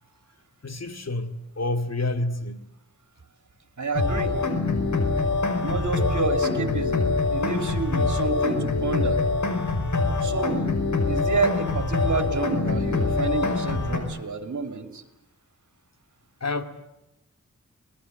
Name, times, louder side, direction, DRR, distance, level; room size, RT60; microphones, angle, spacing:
voice 1, 0.6-2.7 16.4-16.6, left 2 dB, 60° left, 8 dB, 2.4 m, -28 dB
voice 2, 3.8-4.3 5.6-9.2 10.2-10.7 11.1-15.0, right 4 dB, 70° right, 8 dB, 2.9 m, -29 dB
sound 1, 3.9-14.0, left 3 dB, 75° left, 5.2 m, -24 dB
25.0 x 20.0 x 9.4 m, 0.87 s
wide cardioid pair, 70°, 30 cm